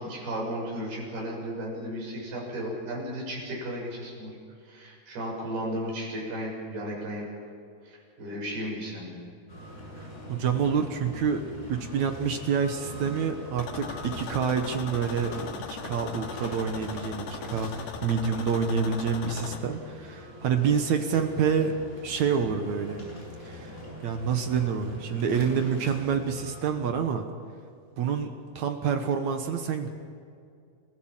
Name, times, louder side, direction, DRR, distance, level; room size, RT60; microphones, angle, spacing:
voice 1, 0.0-4.3 4.6-7.2 7.8-9.2, equal, 80° right, -2 dB, 8.7 m, -34 dB
sound 1, 9.5-26.6, equal, 15° left, 6.9 m, -43 dB
voice 2, 10.0-15.3 15.7-21.8 22.0-23.0 23.4-23.7 24.0-27.3 28.0-29.9, right 6 dB, 60° right, 6 dB, 2.1 m, -27 dB
sound 2, 13.6-19.6, left 6 dB, 80° left, 3.5 m, -39 dB
29.5 x 15.5 x 7.5 m, 2.4 s
omnidirectional pair, 4.5 m